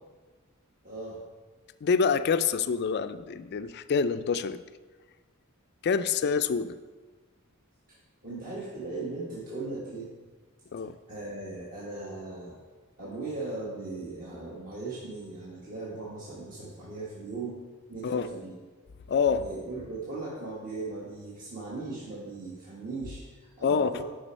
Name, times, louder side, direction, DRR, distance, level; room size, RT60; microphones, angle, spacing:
voice 1, 0.8-1.2 7.9-8.0 8.2-10.1 11.1-12.6 13.0-17.6 17.9-18.5 19.3-24.0, right 3 dB, 40° right, -6 dB, 1.5 m, -38 dB
voice 2, 1.8-4.6 5.8-6.8 10.7-10.9 18.0-18.3 19.1-19.5 23.6-24.0, left 5 dB, 50° left, 12 dB, 0.4 m, -26 dB
11.0 x 5.1 x 4.4 m, 1.3 s
head